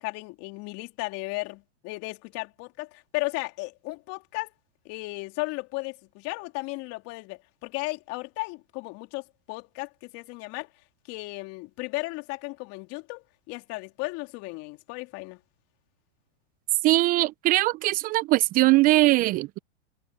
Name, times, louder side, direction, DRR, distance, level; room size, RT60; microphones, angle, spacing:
voice 1, 0.0-4.5 4.8-10.7 11.1-15.4, left 24 dB, 45° left, 3.1 m, -35 dB
voice 2, 16.8-19.6, right 19 dB, 25° right, 0.4 m, -21 dB
hypercardioid pair, 115°, 35 cm